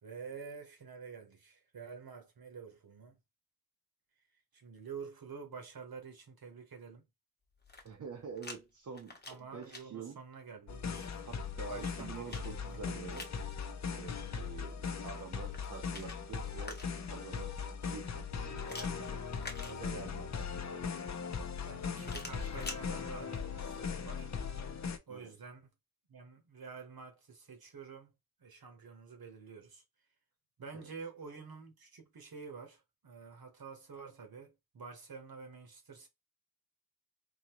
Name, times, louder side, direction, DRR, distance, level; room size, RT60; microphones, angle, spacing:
voice 1, 0.0-3.2 4.5-7.0 9.3-11.2 11.7-13.1 20.3-20.9 21.6-24.3 25.1-25.7 26.1-28.1 28.4-29.8 30.6-36.1, right 5 dB, 70° right, 1.1 m, -49 dB
sound 1, 7.5-8.6 8.9-9.8 11.5-13.4 15.4-17.2 18.6-20.2 22.0-22.8, left 2 dB, 25° left, 0.9 m, -48 dB
voice 2, 7.8-10.2 11.2-13.3 13.9-17.6 17.9-19.2 19.7-20.6 25.1-25.3 30.7-30.9, right 5 dB, 50° right, 0.7 m, -47 dB
sound 2, 10.7-25.0, left 6 dB, 45° left, 0.5 m, -39 dB
3.8 x 2.7 x 2.9 m
wide cardioid pair, 110°, 38 cm